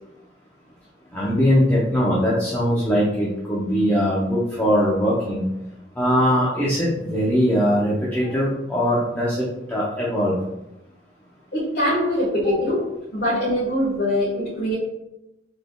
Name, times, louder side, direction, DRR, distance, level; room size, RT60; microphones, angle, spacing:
voice 1, 1.1-5.4 6.0-10.4, equal, 10° left, -8 dB, 0.6 m, -21 dB
voice 2, 11.5-14.7, left 1 dB, 85° left, -9 dB, 1.3 m, -23 dB
4.1 x 3.4 x 2.2 m, 0.91 s
head